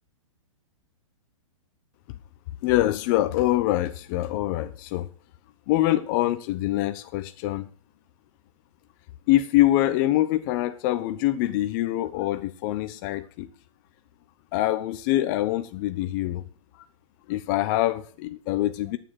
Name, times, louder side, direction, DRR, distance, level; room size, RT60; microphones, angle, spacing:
voice 1, 2.6-5.1 5.7-7.7 9.3-13.5 14.5-16.4 17.3-19.0, left 15 dB, 35° left, 0.8 m, -24 dB
9.3 x 6.8 x 7.4 m
hypercardioid pair, 145°, 17 cm